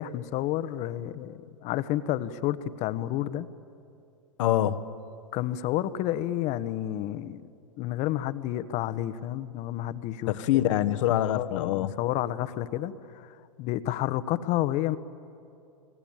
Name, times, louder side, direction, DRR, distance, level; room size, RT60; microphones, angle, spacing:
voice 1, 0.0-3.5 5.3-7.4 7.8-10.6 11.3-15.0, left 13 dB, 40° left, 13 dB, 1.2 m, -30 dB
voice 2, 4.4-4.8 10.3-11.9, left 13 dB, 60° left, 12 dB, 1.3 m, -25 dB
29.5 x 21.5 x 9.0 m, 2.6 s
hypercardioid pair, 105°, 18 cm